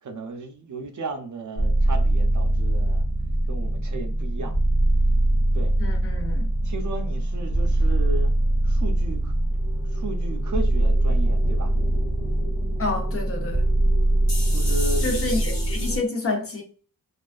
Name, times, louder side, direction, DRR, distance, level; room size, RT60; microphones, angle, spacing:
voice 1, 0.0-3.1 3.5-4.6 5.5-5.7 6.6-8.3 8.6-9.3 9.8-11.7 14.5-15.1, right 2 dB, 55° right, 0.4 m, -34 dB
Cinematic guitar loop and fx-, 1.6-16.0, right 1 dB, 65° left, 0.9 m, -22 dB
voice 2, 5.8-6.4 12.8-13.6 15.0-16.6, left 3 dB, 40° left, 0.5 m, -28 dB
2.4 x 2.2 x 2.4 m
wide cardioid pair, 120°, 37 cm